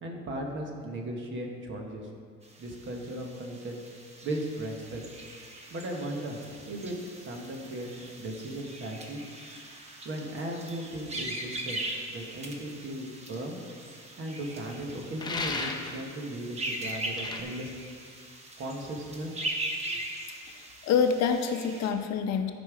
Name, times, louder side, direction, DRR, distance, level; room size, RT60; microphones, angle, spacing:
voice 1, 0.0-2.1 2.6-3.8 4.2-5.0 5.7-6.4 6.7-7.9 8.2-9.2 10.0-11.8 12.1-13.6 14.2-17.7 18.6-19.4 19.9-20.0, right 1 dB, 40° right, 2 dB, 1.3 m, -37 dB
sound 1, 2.4-21.9, right 1 dB, 20° right, 1.0 m, -40 dB
sound 2, 15.2-16.0 17.2-17.4, left 3 dB, 15° left, 0.6 m, -33 dB
voice 2, 20.3-22.5, left 6 dB, 60° left, 6 dB, 0.7 m, -27 dB
13.5 x 5.4 x 4.8 m, 2.1 s
cardioid pair, 165°, 30 cm